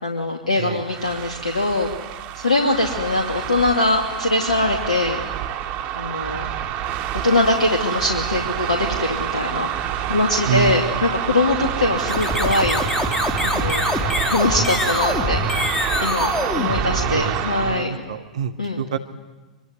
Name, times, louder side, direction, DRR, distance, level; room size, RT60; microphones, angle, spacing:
voice 1, 0.0-1.9 2.3-5.2 6.0-6.5 7.2-9.7 10.1-12.8 13.4-13.8 14.3-15.6 16.0-18.0 18.6-18.8, left 2 dB, 80° left, 2 dB, 2.7 m, -22 dB
sound 1, 0.8-17.9, right 10 dB, 40° right, 2.3 m, -27 dB
voice 2, 10.4-10.9 16.7-17.3 17.6-19.0, right 9 dB, 65° right, 8 dB, 1.6 m, -27 dB
sound 2, 12.0-17.4, left 2 dB, 15° left, 4.0 m, -24 dB
24.5 x 24.5 x 9.5 m, 1.3 s
figure-of-eight pair, 95°, 4 cm